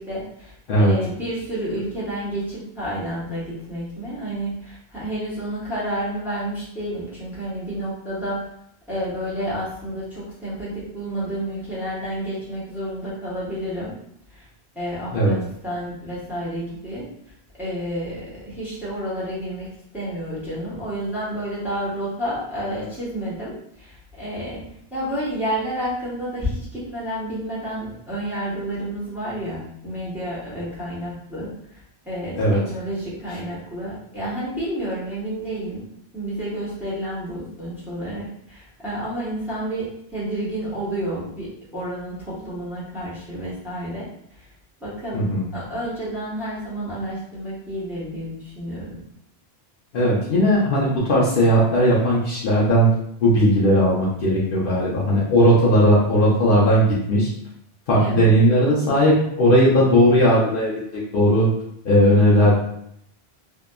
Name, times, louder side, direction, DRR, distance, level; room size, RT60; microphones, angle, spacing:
voice 1, 0.0-8.4 8.9-13.9 14.3-14.5 14.7-17.0 17.6-19.7 19.9-35.8 36.1-44.5 44.8-49.0 58.0-58.3 62.0-62.5, right 1 dB, ahead, -9 dB, 0.9 m, -30 dB
voice 2, 45.1-45.5 49.9-52.9 53.2-57.3 57.9-61.5 61.8-62.5, equal, 65° left, -5 dB, 0.7 m, -17 dB
2.7 x 2.3 x 2.2 m, 0.73 s
omnidirectional pair, 1.1 m